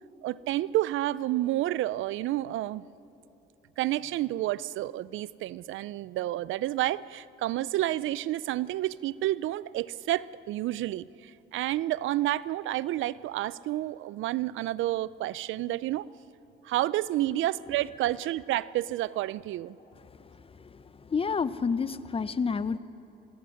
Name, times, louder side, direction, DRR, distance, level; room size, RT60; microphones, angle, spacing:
voice 1, 0.2-2.8 3.8-16.1 16.6-19.8, right 15 dB, 80° right, 19 dB, 0.4 m, -30 dB
voice 2, 21.1-22.8, left 5 dB, 30° left, 15 dB, 0.6 m, -28 dB
24.0 x 19.5 x 6.4 m, 2.9 s
cardioid pair, 90°, 20 cm